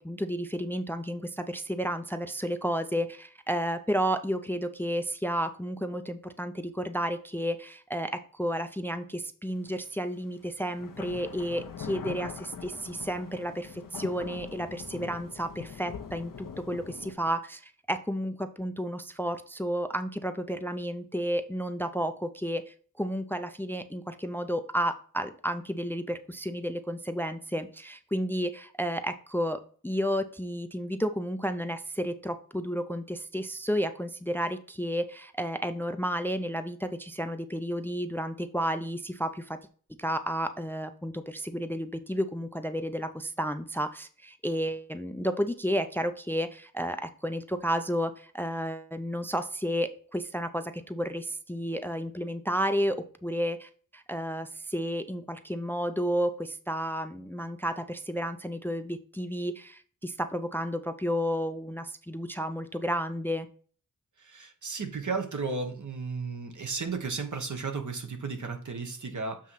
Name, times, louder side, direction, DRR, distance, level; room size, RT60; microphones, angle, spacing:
voice 1, 0.0-39.6 40.0-63.5, equal, 5° left, 9 dB, 0.5 m, -32 dB
sound 1, 9.8-9.9 10.7-17.1, left 6 dB, 85° left, 0.9 m, -42 dB
voice 2, 64.2-69.5, right 4 dB, 65° right, 5 dB, 1.3 m, -34 dB
7.5 x 3.1 x 5.6 m, 0.44 s
wide cardioid pair, 85°, 32 cm